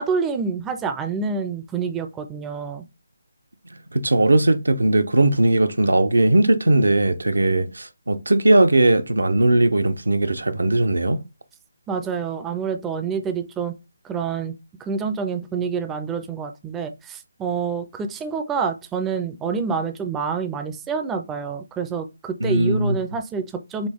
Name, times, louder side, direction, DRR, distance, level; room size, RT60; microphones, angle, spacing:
voice 1, 0.0-2.8 11.9-13.7 14.0-14.5 14.8-23.9, right 5 dB, 10° right, 0.4 m, -27 dB
voice 2, 3.9-11.2 22.4-23.0, right 2 dB, 80° right, 0.6 m, -18 dB
4.2 x 2.8 x 3.3 m
figure-of-eight pair, 155°, 0 cm